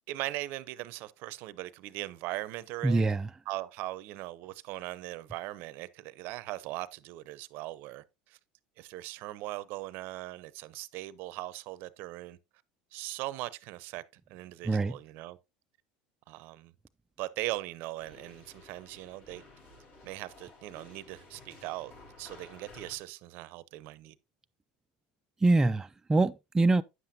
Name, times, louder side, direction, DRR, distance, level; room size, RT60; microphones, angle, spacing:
voice 1, 0.1-3.1 3.5-8.4 8.8-12.4 12.9-14.0 14.3-15.4 16.3-16.7 17.2-19.4 20.0-21.9 22.2-24.1, right 17 dB, 65° right, 0.6 m, -39 dB
voice 2, 2.8-3.3 14.7-14.9 25.4-26.8, right 2 dB, 15° right, 0.4 m, -24 dB
sound 1, 18.0-23.0, left 3 dB, 50° left, 5.2 m, -54 dB
9.6 x 7.6 x 2.7 m
supercardioid pair, 100°, 4 cm